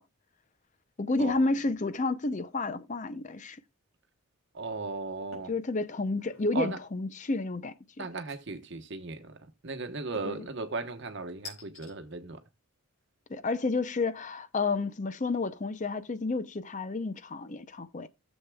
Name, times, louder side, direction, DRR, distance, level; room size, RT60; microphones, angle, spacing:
voice 1, 1.0-3.6 5.5-8.1 10.2-10.4 13.3-18.1, left 3 dB, 35° left, 0.6 m, -31 dB
voice 2, 4.5-5.5 6.5-6.8 8.0-12.4, right 3 dB, 55° right, 1.0 m, -36 dB
sound 1, 5.3-5.6 6.1-6.5 8.3-8.8 10.1-10.5 11.4-11.9, left 3 dB, 65° left, 4.3 m, -48 dB
17.0 x 7.2 x 2.3 m
head